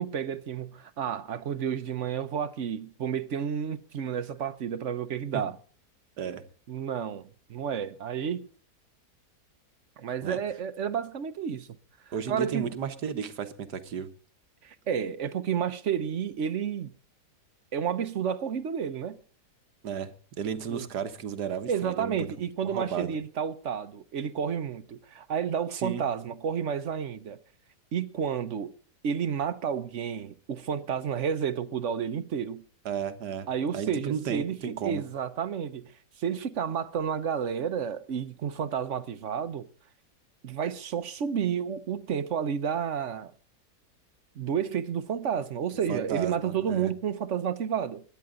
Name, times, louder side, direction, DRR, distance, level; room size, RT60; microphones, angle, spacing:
voice 1, 0.0-5.6 6.7-8.5 10.0-11.7 12.1-12.7 14.6-16.9 17.7-19.2 20.7-20.9 21.7-27.4 27.9-28.7 29.0-32.6 33.5-35.9 36.2-39.7 40.4-43.3 44.3-48.0, right 8 dB, 55° right, 1.0 m, -31 dB
voice 2, 12.1-14.1 19.8-22.3 22.6-23.2 25.7-26.0 32.9-33.5 33.7-35.0 45.9-46.9, right 7 dB, 80° right, 1.8 m, -34 dB
22.0 x 10.5 x 3.8 m
omnidirectional pair, 1.7 m